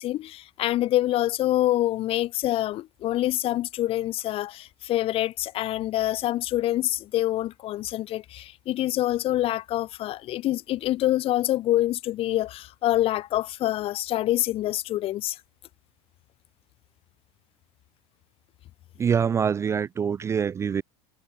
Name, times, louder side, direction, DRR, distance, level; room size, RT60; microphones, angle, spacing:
voice 1, 0.0-15.4, left 14 dB, 45° left, 0.8 m, -26 dB
voice 2, 19.0-20.8, right 7 dB, 20° right, 0.3 m, -25 dB
supercardioid pair, 120°, 14 cm